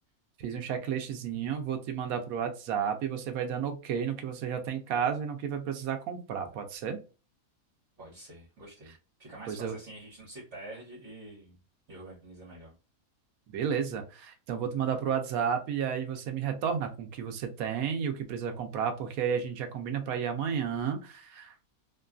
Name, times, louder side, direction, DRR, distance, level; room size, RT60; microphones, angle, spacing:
voice 1, 0.4-7.0 9.5-9.7 13.5-21.6, right 7 dB, 90° right, 6 dB, 1.0 m, -32 dB
voice 2, 8.0-11.6 11.9-12.7, right 2 dB, 55° right, -5 dB, 1.4 m, -47 dB
2.9 x 2.3 x 2.3 m, 0.33 s
omnidirectional pair, 1.5 m